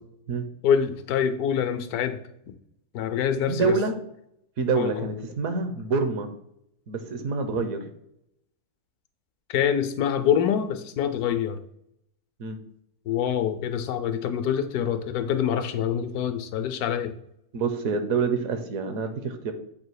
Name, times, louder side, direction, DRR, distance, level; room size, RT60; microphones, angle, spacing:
voice 1, 0.6-2.2 2.9-3.8 4.7-5.0 7.5-7.7 9.5-11.6 13.1-17.1, left 8 dB, 80° left, 10 dB, 1.1 m, -25 dB
voice 2, 3.5-4.0 4.6-6.3 6.9-7.9 12.4-12.6 17.5-19.5, right 4 dB, 70° right, 7 dB, 1.1 m, -27 dB
7.5 x 2.7 x 4.7 m, 0.75 s
omnidirectional pair, 1.6 m